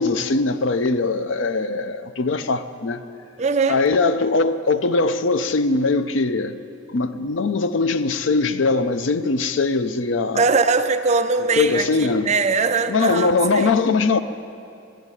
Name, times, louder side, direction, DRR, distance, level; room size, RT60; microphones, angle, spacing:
voice 1, 0.0-3.0 3.7-6.5 6.9-10.4 11.5-12.3 12.9-14.2, left 3 dB, 70° left, 0.6 m, -21 dB
voice 2, 3.4-3.8 10.3-13.7, right 4 dB, 35° right, 0.5 m, -21 dB
11.5 x 9.1 x 9.8 m
head